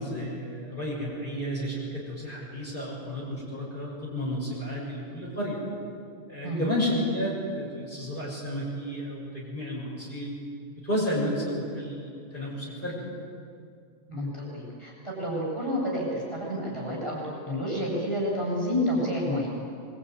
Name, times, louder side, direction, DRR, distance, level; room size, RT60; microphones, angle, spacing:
voice 1, 0.0-5.6 6.3-10.4 10.8-13.1, equal, 35° left, -6 dB, 7.9 m, -32 dB
voice 2, 14.1-17.2 17.4-19.5, equal, 20° left, -4 dB, 8.1 m, -29 dB
25.0 x 23.5 x 9.8 m, 2.3 s
omnidirectional pair, 1.4 m